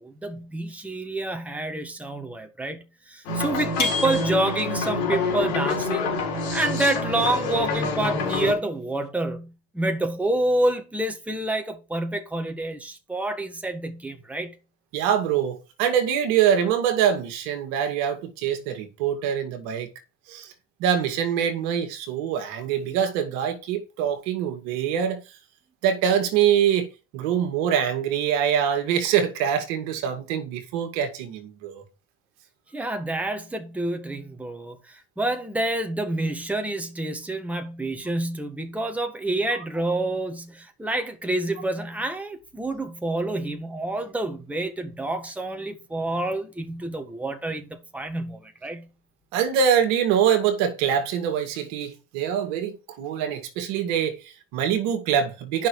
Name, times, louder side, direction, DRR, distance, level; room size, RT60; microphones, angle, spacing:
voice 1, 0.0-6.1 6.5-14.5 32.7-48.9, right 2 dB, 5° right, 1.6 m, -28 dB
sound 1, 3.2-8.5, left 3 dB, 80° left, 4.5 m, -27 dB
sound 2, 3.8-4.9, left 4 dB, 30° left, 3.6 m, -29 dB
voice 2, 14.9-19.9 20.3-20.5 20.8-25.2 25.8-31.8 49.3-55.7, right 8 dB, 65° right, 2.1 m, -24 dB
9.5 x 5.9 x 4.8 m
hypercardioid pair, 85°, 32 cm